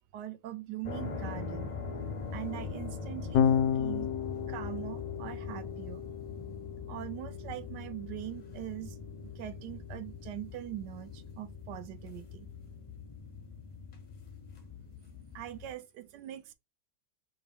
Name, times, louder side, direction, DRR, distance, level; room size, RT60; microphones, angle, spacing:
voice 1, 0.1-1.7 2.3-3.5 3.7-4.1 4.5-6.0 6.9-9.0 9.2-12.5 15.3-16.5, right 13 dB, 75° right, 1.2 m, -42 dB
sound 1, 0.8-15.7, left 4 dB, 45° left, 0.5 m, -42 dB
Electric guitar / Bass guitar, 3.3-9.7, left 8 dB, 70° left, 1.0 m, -33 dB
4.2 x 2.6 x 3.4 m
omnidirectional pair, 1.9 m